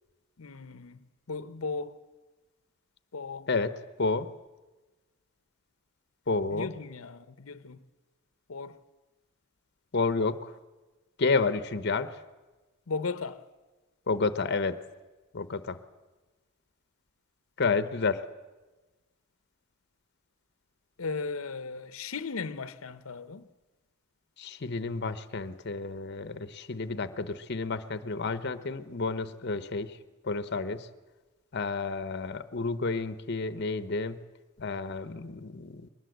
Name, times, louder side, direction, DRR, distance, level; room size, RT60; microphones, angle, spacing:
voice 1, 0.4-1.0 1.3-2.0 3.1-3.5 6.5-7.8 8.5-8.8 12.9-13.4 21.0-23.5, left 4 dB, 90° left, 0.8 m, -36 dB
voice 2, 3.5-4.3 6.3-6.7 9.9-10.5 11.2-12.2 14.1-14.8 15.3-15.8 17.6-18.2 24.4-30.0 30.2-30.9 31.5-34.2 34.6-35.9, left 4 dB, 55° left, 0.8 m, -30 dB
21.5 x 19.5 x 7.9 m
head